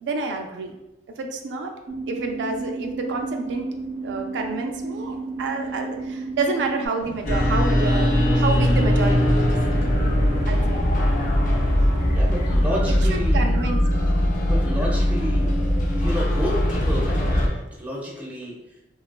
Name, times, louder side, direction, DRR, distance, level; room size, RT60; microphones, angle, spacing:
voice 1, 0.0-0.7 1.2-1.7 2.1-3.7 4.0-9.5 10.5-11.2 13.1-14.1, right 3 dB, 70° right, 3 dB, 0.3 m, -29 dB
sound 1, 1.9-6.9, right 3 dB, 90° right, 0.7 m, -32 dB
sound 2, 7.0-13.3, left 1 dB, 75° left, 0.7 m, -39 dB
sound 3, 7.3-17.5, equal, 45° left, 0.4 m, -20 dB
voice 2, 12.1-13.5 14.4-15.5 15.8-18.5, equal, 10° right, -4 dB, 0.5 m, -30 dB
2.8 x 2.3 x 2.2 m, 0.95 s
head